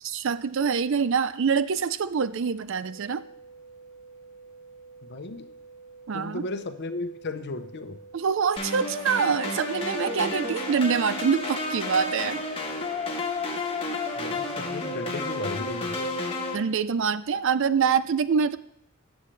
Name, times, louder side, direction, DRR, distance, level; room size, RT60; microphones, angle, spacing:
voice 1, 0.0-3.2 6.1-6.4 8.1-12.4 16.5-18.6, right 6 dB, 65° right, 14 dB, 0.5 m, -25 dB
sound 1, 2.8-12.8, right 4 dB, 5° left, 2.7 m, -49 dB
voice 2, 5.0-5.5 6.1-8.0 14.2-16.1, left 2 dB, 55° left, 9 dB, 0.8 m, -35 dB
sound 2, 8.6-16.6, left 2 dB, 25° left, 1.5 m, -31 dB
17.5 x 7.2 x 3.3 m, 0.73 s
head